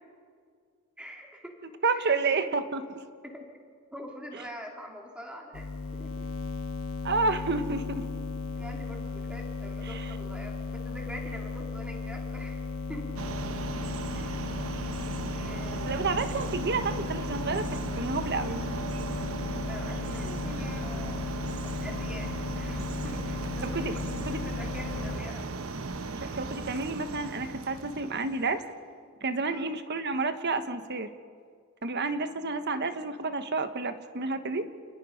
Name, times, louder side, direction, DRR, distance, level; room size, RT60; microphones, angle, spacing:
voice 1, 1.0-1.6 1.9-2.2 3.2-3.4 3.9-6.3 8.5-12.6 12.9-13.2 14.1-14.3 14.5-14.7 15.3-15.9 19.7-21.3 21.6-25.5 26.3-26.4 29.5-29.7, equal, 5° right, 0 dB, 3.1 m, -45 dB
voice 2, 1.8-3.0 7.0-8.0 9.9-10.1 15.9-18.8 23.6-24.0 24.2-24.4 26.1-28.6 29.2-31.1 31.8-34.7, right 3 dB, 55° right, 10 dB, 1.2 m, -30 dB
sound 1, 5.5-25.2, left 4 dB, 75° left, 0.8 m, -36 dB
sound 2, 13.2-28.6, right 3 dB, 75° right, 1.0 m, -37 dB
28.5 x 19.5 x 5.3 m, 2.1 s
head